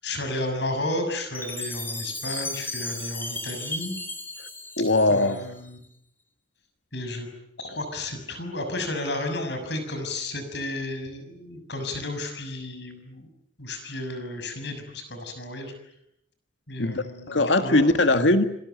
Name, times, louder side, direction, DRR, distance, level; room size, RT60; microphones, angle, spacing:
voice 1, 0.0-4.0 5.1-5.8 6.9-7.3 7.6-13.3 13.6-15.7 16.7-17.8, left 1 dB, 65° left, 7 dB, 6.4 m, -32 dB
Chime, 1.3-5.6, left 2 dB, 10° left, 4.3 m, -35 dB
voice 2, 4.8-5.4 16.8-18.4, left 2 dB, 85° left, 8 dB, 1.7 m, -21 dB
28.0 x 22.5 x 9.2 m, 0.77 s
head